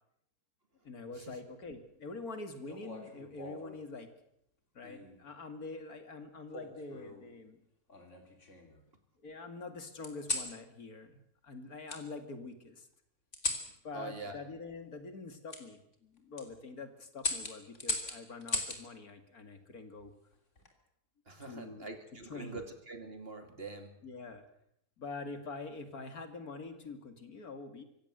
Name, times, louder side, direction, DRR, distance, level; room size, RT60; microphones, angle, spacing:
voice 1, 0.8-4.1 4.7-7.6 9.2-12.9 13.8-20.1 21.5-21.9 22.2-22.6 24.0-24.4 25.0-27.8, left 3 dB, 65° left, 8 dB, 2.7 m, -45 dB
Double Action Revolver Empty Chamber, 2.7-3.8 4.8-5.2 6.5-7.3 7.9-8.8 10.0-10.5 11.9-12.0 13.3-13.7 15.5-15.6 16.2-16.5 17.2-18.8 20.3-20.7, left 3 dB, 45° left, 3.4 m, -38 dB
voice 2, 13.9-14.4 21.3-24.0, right 2 dB, 35° right, 7 dB, 2.6 m, -44 dB
25.5 x 16.0 x 8.0 m, 0.74 s
omnidirectional pair, 1.7 m